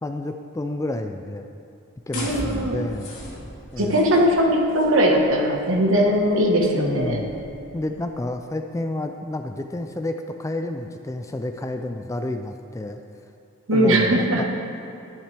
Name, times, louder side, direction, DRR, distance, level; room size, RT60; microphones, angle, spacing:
voice 1, 0.0-1.5 2.1-3.2 3.7-4.0 6.7-7.3 7.7-13.0 13.7-14.4, left 1 dB, 15° left, 6 dB, 0.3 m, -30 dB
sound 1, 2.1-8.1, left 1 dB, 75° left, 2.4 m, -39 dB
voice 2, 2.1-2.8 3.8-7.3 13.7-14.4, equal, 65° right, 0 dB, 1.3 m, -20 dB
11.0 x 10.0 x 3.4 m, 2.7 s
head